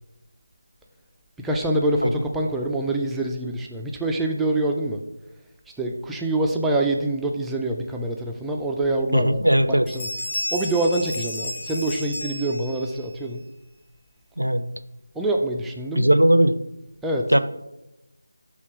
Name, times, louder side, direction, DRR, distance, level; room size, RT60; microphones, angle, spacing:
voice 1, 1.4-5.0 5.8-9.4 9.7-10.1 10.5-13.4 15.2-16.1 17.0-17.4, right 2 dB, 5° right, 0 dB, 0.3 m, -25 dB
voice 2, 9.1-9.9 14.4-14.6 15.9-16.6 17.3-17.4, right 1 dB, 80° right, 12 dB, 0.5 m, -18 dB
sound 1, 9.4-9.6 9.9-13.0, left 1 dB, 20° left, 1.2 m, -32 dB
6.4 x 3.4 x 5.0 m, 0.94 s
figure-of-eight pair, 160°, 0 cm